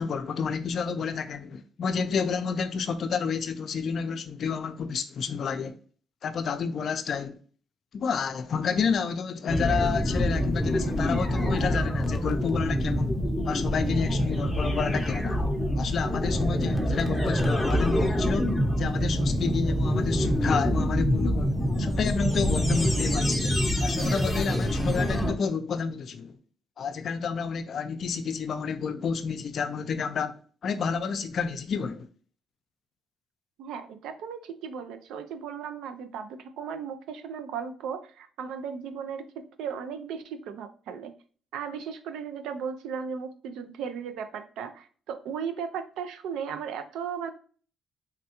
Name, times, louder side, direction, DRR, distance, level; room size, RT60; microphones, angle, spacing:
voice 1, 0.0-5.8 6.2-7.4 7.9-13.2 13.4-15.4 15.8-18.5 18.8-26.4 26.8-32.1, left 6 dB, 60° left, 0.4 m, -30 dB
sound 1, 9.5-25.3, equal, 10° left, 0.7 m, -26 dB
voice 2, 33.6-41.1 41.5-47.3, right 7 dB, 90° right, 0.4 m, -36 dB
3.5 x 2.3 x 2.8 m
cardioid pair, 90°, 0 cm